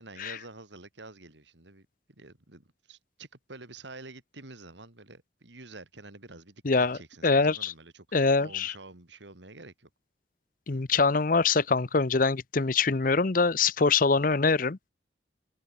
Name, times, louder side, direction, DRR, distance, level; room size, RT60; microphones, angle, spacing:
voice 1, 0.0-9.9, right 2 dB, 80° right, 3.3 m, -48 dB
voice 2, 6.6-7.0 7.2-7.7 8.1-8.7 10.7-14.8, left 4 dB, 50° left, 0.7 m, -24 dB
head